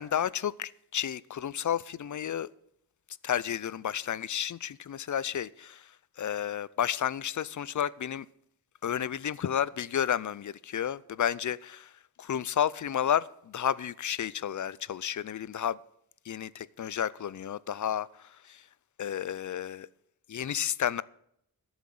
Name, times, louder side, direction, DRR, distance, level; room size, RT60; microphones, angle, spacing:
voice 1, 0.0-2.5 3.2-5.8 6.2-8.3 8.8-11.9 12.2-15.8 16.3-18.6 19.0-19.9 20.3-21.0, left 9 dB, 55° left, 0.6 m, -31 dB
13.0 x 7.2 x 7.7 m
wide cardioid pair, 80°, 37 cm